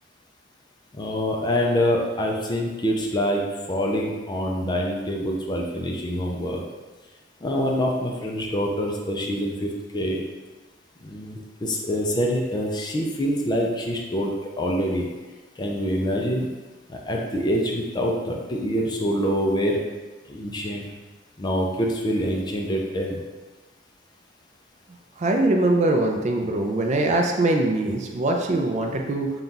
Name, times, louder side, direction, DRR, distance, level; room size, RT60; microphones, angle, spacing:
voice 1, 0.9-3.4 3.7-6.6 7.4-10.2 11.0-15.1 15.6-16.5 16.9-19.8 20.3-20.9 21.4-23.2, equal, 25° left, 0 dB, 0.4 m, -25 dB
voice 2, 25.2-29.3, right 2 dB, 40° right, 2 dB, 0.4 m, -22 dB
4.0 x 2.3 x 3.8 m, 1.2 s
head